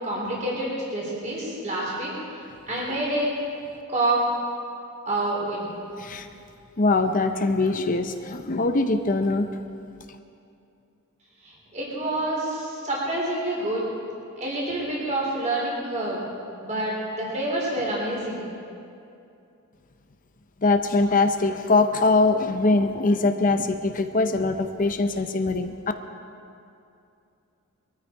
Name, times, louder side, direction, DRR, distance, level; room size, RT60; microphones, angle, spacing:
voice 1, 0.0-2.1 2.7-3.3 3.9-4.2 5.1-5.7 11.4-13.9 14.4-16.2 16.6-18.4, right 1 dB, 35° right, -4 dB, 4.0 m, -27 dB
voice 2, 6.8-9.5 20.6-25.7, left 3 dB, 35° left, 7 dB, 0.7 m, -22 dB
22.0 x 13.5 x 4.6 m, 2.6 s
head